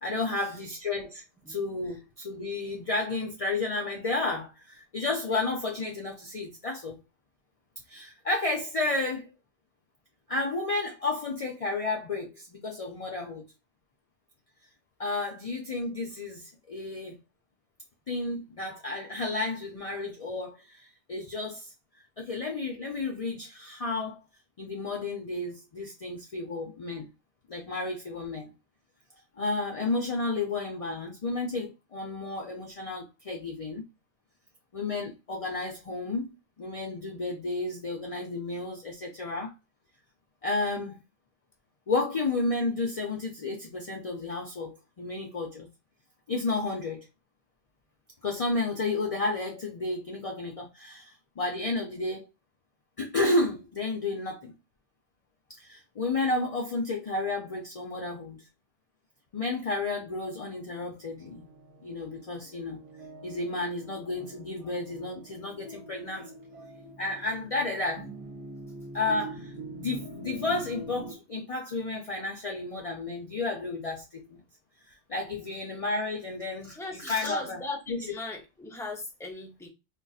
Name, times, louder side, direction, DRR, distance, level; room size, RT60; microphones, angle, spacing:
voice 1, 0.0-7.0 7.9-9.3 10.3-13.5 15.0-17.2 18.1-21.7 22.2-24.2 24.6-27.1 27.5-28.5 29.4-33.8 34.7-39.5 40.4-41.0 41.9-45.7 46.3-47.1 48.2-52.3 53.0-54.5 55.6-58.4 59.3-61.4 61.8-62.8 63.2-66.3 67.0-68.1 68.9-74.4 74.9-78.1, left 2 dB, 45° left, 0.5 m, -32 dB
sound 1, 61.2-71.1, right 2 dB, 75° right, 1.1 m, -44 dB
voice 2, 76.8-79.7, left 3 dB, 5° left, 0.6 m, -38 dB
3.9 x 2.3 x 2.3 m
omnidirectional pair, 1.0 m